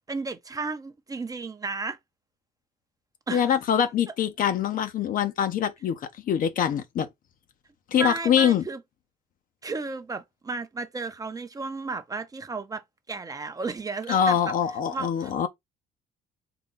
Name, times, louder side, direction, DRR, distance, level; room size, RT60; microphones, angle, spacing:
voice 1, 0.1-2.0 3.3-3.5 8.0-8.8 9.6-14.5 14.9-15.5, right 4 dB, 20° right, 0.6 m, -33 dB
voice 2, 3.3-6.0 6.3-7.1 7.9-8.6 14.1-15.5, left 8 dB, 55° left, 0.7 m, -24 dB
3.8 x 2.3 x 3.8 m
cardioid pair, 110°, 17 cm